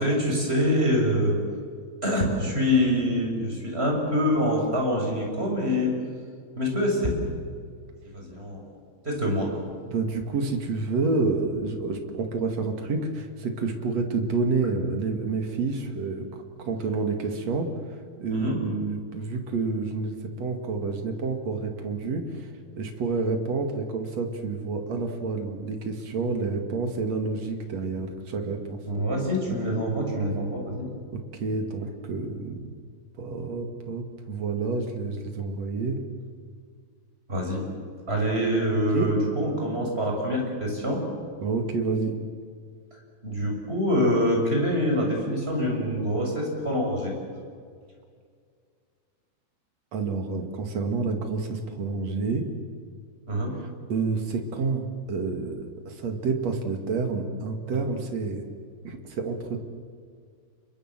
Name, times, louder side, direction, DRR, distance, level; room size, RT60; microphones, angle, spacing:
voice 1, 0.0-1.4 2.0-5.9 6.5-7.1 8.1-8.6 9.0-9.6 18.3-18.6 28.8-30.9 37.3-37.6 38.1-41.1 43.2-47.1 53.3-53.6 57.7-57.8, equal, 10° right, 0 dB, 6.2 m, -25 dB
voice 2, 9.9-16.3 16.6-28.8 31.1-32.7 33.2-36.0 38.9-39.2 41.4-42.1 49.9-52.5 53.9-58.4 58.8-59.6, right 4 dB, 45° right, 4 dB, 2.3 m, -29 dB
29.5 x 23.0 x 7.6 m, 2.1 s
omnidirectional pair, 5.9 m